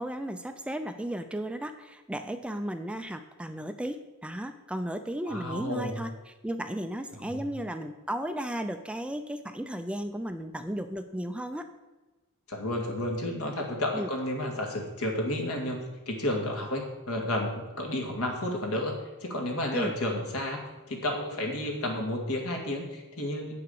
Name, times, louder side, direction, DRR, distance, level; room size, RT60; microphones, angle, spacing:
voice 1, 0.0-11.7 13.9-14.1 19.7-19.9, right 1 dB, 5° right, 8 dB, 0.4 m, -35 dB
voice 2, 5.3-6.0 7.1-7.4 12.5-18.9 19.2-23.5, left 1 dB, 75° left, 1 dB, 2.3 m, -31 dB
8.6 x 6.8 x 6.7 m, 1.2 s
head